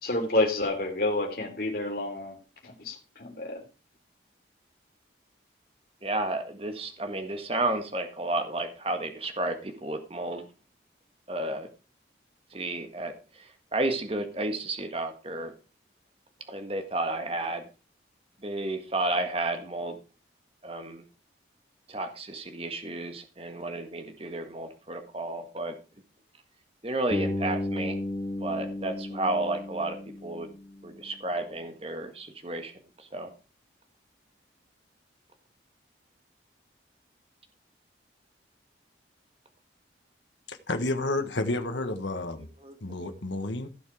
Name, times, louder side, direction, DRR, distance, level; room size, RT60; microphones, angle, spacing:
voice 1, 0.0-2.4 2.8-3.6, left 2 dB, 50° left, 3.7 m, -29 dB
voice 2, 6.0-10.4 11.3-11.7 12.5-15.5 16.5-17.7 18.4-20.0 20.6-21.0 21.9-25.8 26.8-28.0 28.4-30.5 30.8-32.7 33.0-33.3 42.6-42.7 43.0-43.1, right 2 dB, 30° right, 1.7 m, -32 dB
Bass guitar, 27.1-31.1, left 1 dB, 35° left, 2.3 m, -34 dB
voice 3, 40.5-42.5 42.8-43.7, left 2 dB, 80° left, 1.4 m, -30 dB
16.0 x 7.0 x 4.9 m
head